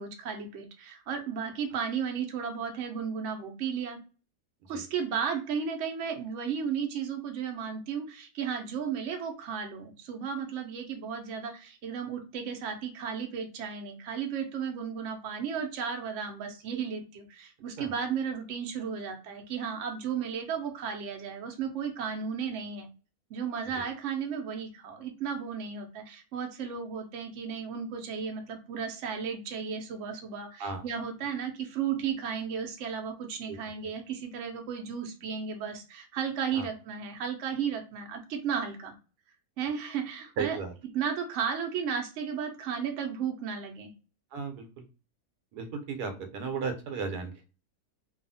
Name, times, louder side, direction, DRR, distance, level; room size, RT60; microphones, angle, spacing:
voice 1, 0.0-4.0 4.7-22.9 23.3-38.9 39.6-40.6 40.9-43.9, right 7 dB, 60° right, 3 dB, 0.8 m, -34 dB
voice 2, 40.4-40.7 44.3-44.7 45.5-47.5, right 5 dB, 80° right, 6 dB, 1.1 m, -35 dB
2.7 x 2.4 x 2.6 m, 0.34 s
omnidirectional pair, 1.7 m